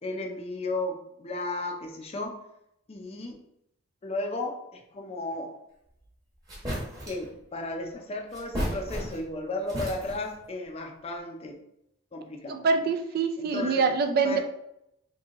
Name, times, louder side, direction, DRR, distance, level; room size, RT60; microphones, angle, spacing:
voice 1, 0.0-2.4 2.9-3.4 4.0-5.5 7.1-11.6 12.1-12.7 13.4-13.9 14.2-14.4, left 2 dB, 30° left, 2 dB, 0.5 m, -34 dB
sound 1, 6.0-6.1 6.5-7.3 8.3-9.4 9.7-10.4, equal, 20° right, 1.0 m, -34 dB
voice 2, 12.5-14.4, right 4 dB, 50° right, 7 dB, 0.4 m, -25 dB
2.9 x 2.6 x 3.6 m, 0.79 s
head